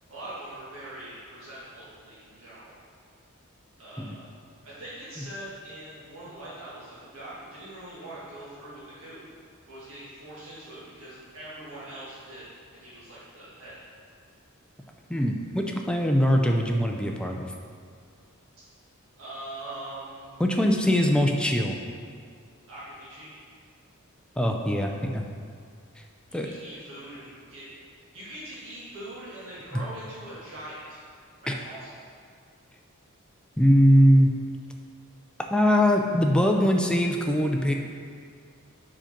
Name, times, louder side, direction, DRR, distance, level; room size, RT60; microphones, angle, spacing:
voice 1, 0.1-2.7 3.8-4.3 4.6-9.2 9.7-12.4 12.7-13.7 19.2-20.3 22.7-23.3 26.3-27.6 28.0-31.0 31.4-31.9, right 1 dB, 65° right, -9 dB, 1.8 m, -42 dB
voice 2, 15.1-17.5 20.4-21.8 24.4-25.2 26.3-26.5 31.5-31.6 33.6-34.3 35.5-37.7, equal, 5° left, 2 dB, 0.4 m, -21 dB
5.1 x 5.0 x 5.9 m, 2.2 s
head